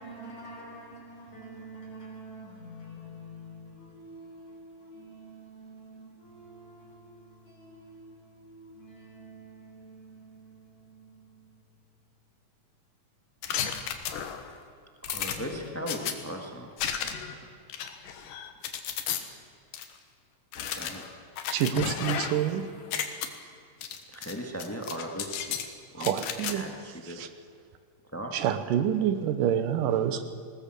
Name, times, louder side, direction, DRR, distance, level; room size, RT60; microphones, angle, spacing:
voice 1, 0.0-12.0, right 1 dB, 65° left, 5.3 m, -47 dB
sound 1, 13.4-14.5 15.0-16.1 16.8-17.3 17.7-19.2 19.7-19.9 20.5-22.5 22.8-23.3 23.8-24.3 24.6-25.7 26.0-26.5, left 8 dB, 85° left, 2.9 m, -33 dB
voice 2, 15.0-17.5 20.5-21.0 24.1-25.6 25.9-26.1 26.5-27.2 28.0-28.3, equal, 20° left, 0.4 m, -38 dB
voice 3, 21.5-22.7 26.0-26.6 27.2-27.3 28.3-30.3, right 10 dB, 85° right, 2.7 m, -27 dB
20.0 x 17.5 x 7.8 m
omnidirectional pair, 3.7 m